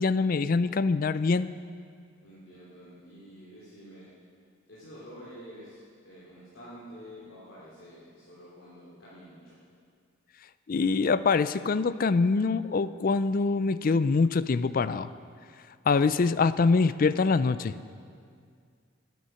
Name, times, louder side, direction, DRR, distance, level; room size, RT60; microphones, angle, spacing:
voice 1, 0.0-1.5 10.7-15.1 15.9-17.7, left 4 dB, 45° left, 15 dB, 0.4 m, -24 dB
voice 2, 2.2-4.1 4.7-9.6, equal, 80° left, -9 dB, 3.2 m, -48 dB
19.0 x 9.3 x 5.7 m, 2.2 s
head